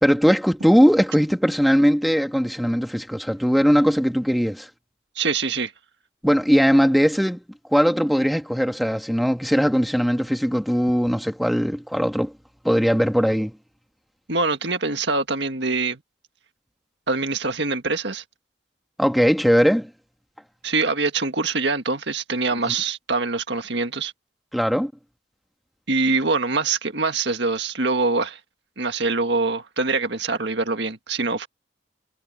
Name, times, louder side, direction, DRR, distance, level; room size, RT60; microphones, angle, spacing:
voice 1, 0.0-4.7 6.2-7.4 7.7-12.3 12.6-13.5 19.0-19.9 22.6-22.7 24.5-24.9, equal, ahead, 1.9 m, -19 dB
voice 2, 5.2-5.7 14.3-16.0 17.1-18.2 20.6-24.1 25.9-28.4 28.8-31.5, right 3 dB, 60° right, 1.9 m, -24 dB
head